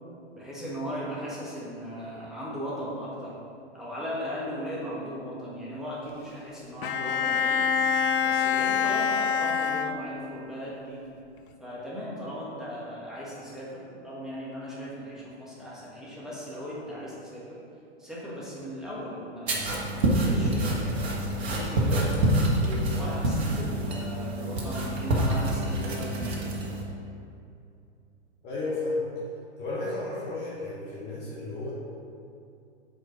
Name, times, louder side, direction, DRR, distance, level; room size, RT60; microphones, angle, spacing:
voice 1, 0.3-3.3 3.7-7.6 8.2-11.1 11.6-17.6 18.0-22.1 22.6-26.4, equal, ahead, -8 dB, 1.4 m, -37 dB
Bowed string instrument, 6.8-10.5, left 7 dB, 50° left, 0.5 m, -26 dB
sound 1, 19.5-26.8, right 1 dB, 60° right, 1.5 m, -27 dB
voice 2, 28.4-29.1 29.6-31.7, left 2 dB, 30° left, -5 dB, 1.1 m, -32 dB
4.9 x 4.4 x 6.0 m, 2.6 s
hypercardioid pair, 120°, 35 cm